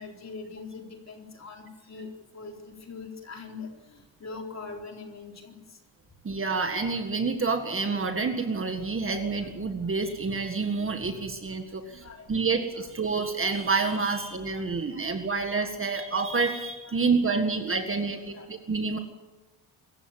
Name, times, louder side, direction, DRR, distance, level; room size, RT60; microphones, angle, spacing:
voice 1, 0.0-5.8 11.8-12.9 14.1-14.2 14.5-15.2 15.8-15.9 16.8-17.4 18.0-18.6, left 4 dB, 35° left, 2 dB, 4.1 m, -43 dB
voice 2, 6.2-19.0, right 4 dB, 25° right, 6 dB, 1.8 m, -28 dB
25.5 x 15.0 x 9.2 m, 1.1 s
cardioid pair, 160°, 48 cm